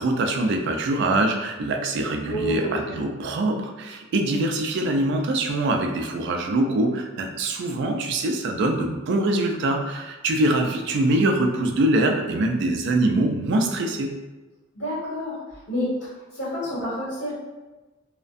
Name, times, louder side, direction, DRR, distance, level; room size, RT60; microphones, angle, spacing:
voice 1, 0.0-14.1, right 2 dB, 60° right, 4 dB, 0.3 m, -23 dB
voice 2, 2.3-2.9 14.7-15.4 15.7-16.1 16.3-17.3, equal, 65° left, -8 dB, 1.4 m, -28 dB
2.4 x 2.1 x 2.5 m, 1.1 s
head